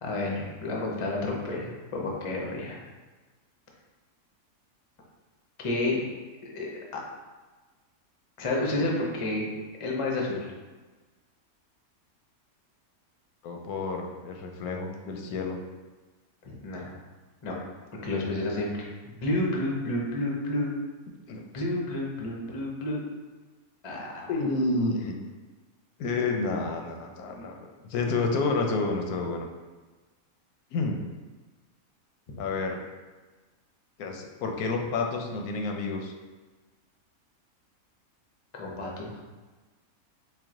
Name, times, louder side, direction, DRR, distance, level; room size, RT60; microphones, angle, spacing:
voice 1, 0.0-2.8 5.6-6.0 6.4-6.7 8.4-9.5 9.8-10.5 16.4-16.9 17.4-17.5 18.0-20.7 21.5-23.0 23.8-24.3 32.3-32.4 38.5-39.1, left 2 dB, 50° left, -1 dB, 0.4 m, -30 dB
voice 2, 13.4-15.6 21.3-21.4 24.3-25.2 26.0-29.5 30.7-31.0 32.4-32.8 34.0-36.1, left 3 dB, 90° left, 3 dB, 1.1 m, -29 dB
4.5 x 2.1 x 3.6 m, 1.3 s
omnidirectional pair, 1.5 m